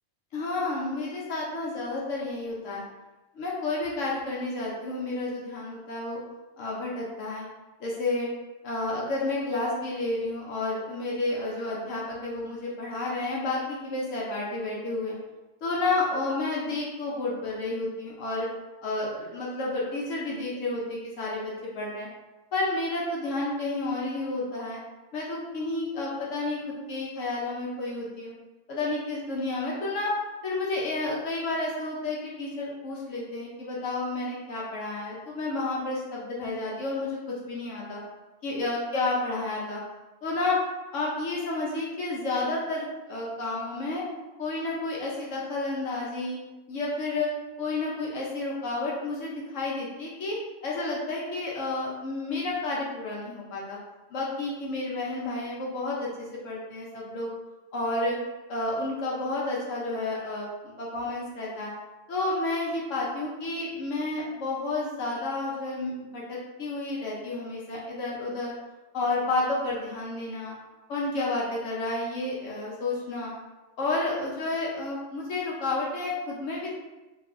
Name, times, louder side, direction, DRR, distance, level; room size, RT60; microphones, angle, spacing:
voice 1, 0.3-2.8 3.3-6.2 6.6-7.4 7.8-8.3 8.6-15.2 15.6-18.5 18.8-22.1 22.5-24.8 25.1-28.3 28.7-30.1 30.4-38.0 38.4-39.8 40.2-40.6 40.9-44.0 44.4-46.4 46.7-47.3 47.6-50.4 50.6-53.8 54.1-57.3 57.7-58.2 58.5-61.7 62.1-68.5 68.9-70.5 70.9-73.3 73.8-76.7, left 2 dB, 70° left, -4 dB, 0.9 m, -31 dB
3.0 x 2.5 x 2.4 m, 1.1 s
omnidirectional pair, 1.4 m